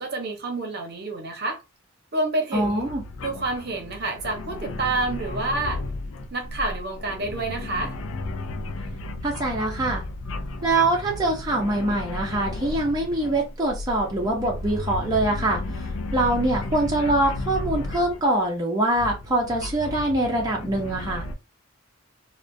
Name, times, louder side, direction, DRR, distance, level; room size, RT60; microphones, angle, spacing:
voice 1, 0.0-1.6 2.1-2.9 3.2-5.8 6.3-7.9, right 2 dB, 55° right, 0.7 m, -28 dB
sound 1, 2.5-18.3 18.9-21.4, left 2 dB, 90° left, 0.4 m, -34 dB
voice 2, 2.5-3.0 9.2-10.0 10.6-15.6 16.1-21.3, right 2 dB, 20° right, 0.5 m, -24 dB
2.4 x 2.1 x 2.5 m
head